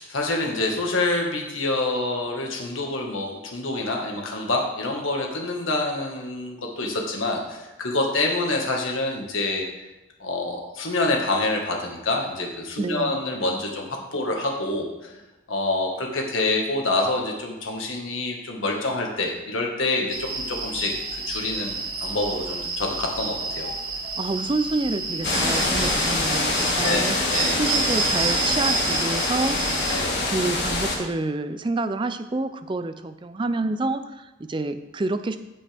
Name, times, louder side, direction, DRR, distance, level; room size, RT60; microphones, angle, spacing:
voice 1, 0.0-9.9 10.2-13.9 14.1-15.1 15.5-20.9 21.3-23.7 26.8-27.6 29.9-30.2, left 2 dB, 85° left, 0 dB, 1.6 m, -27 dB
voice 2, 12.8-13.2 24.2-27.2 27.6-29.6 30.2-35.4, right 2 dB, 25° right, 11 dB, 0.4 m, -28 dB
sound 1, 20.1-30.0, right 4 dB, 50° right, 1.6 m, -30 dB
sound 2, 25.2-31.0, left 2 dB, 55° left, 1.8 m, -25 dB
15.5 x 5.4 x 3.5 m, 1.0 s
head